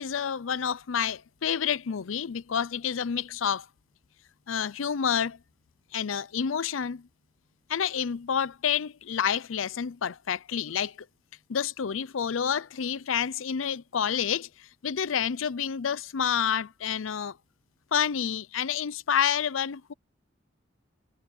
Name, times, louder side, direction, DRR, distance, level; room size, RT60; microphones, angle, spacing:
voice 1, 0.0-3.7 4.5-5.4 5.9-7.1 7.7-11.0 11.5-17.4 17.9-19.9, left 8 dB, 85° left, 0.5 m, -29 dB
head